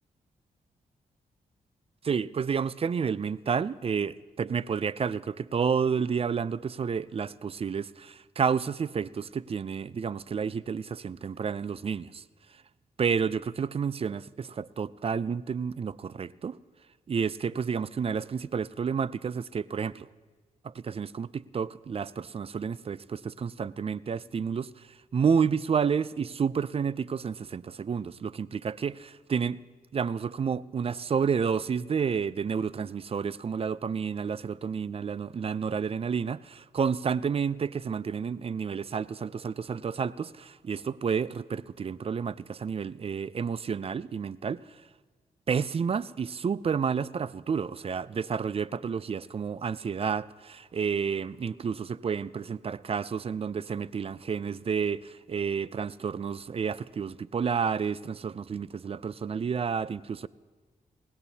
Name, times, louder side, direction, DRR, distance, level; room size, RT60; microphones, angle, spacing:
voice 1, 2.0-12.2 13.0-16.6 17.1-20.1 20.6-24.9 25.1-29.6 29.9-44.6 45.5-60.3, right 6 dB, 40° right, 0.4 m, -30 dB
20.5 x 18.5 x 2.8 m
cardioid pair, 55°, 15 cm